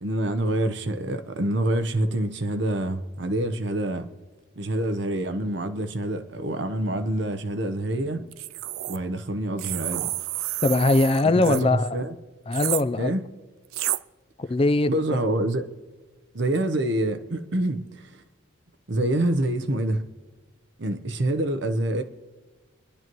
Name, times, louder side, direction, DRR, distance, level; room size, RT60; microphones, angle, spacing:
voice 1, 0.0-4.1 4.6-8.3 8.9-10.1 11.2-12.1 13.0-13.2 14.9-15.7 16.3-18.2 18.9-20.0 20.8-22.0, right 1 dB, 60° right, 0.9 m, -26 dB
sound 1, 8.3-9.0 9.6-11.6 12.5-12.8 13.7-14.0, right 16 dB, 85° right, 0.3 m, -30 dB
voice 2, 10.6-12.0 12.5-13.1 14.4-15.2, left 2 dB, 25° left, 0.4 m, -21 dB
25.0 x 11.0 x 3.1 m
head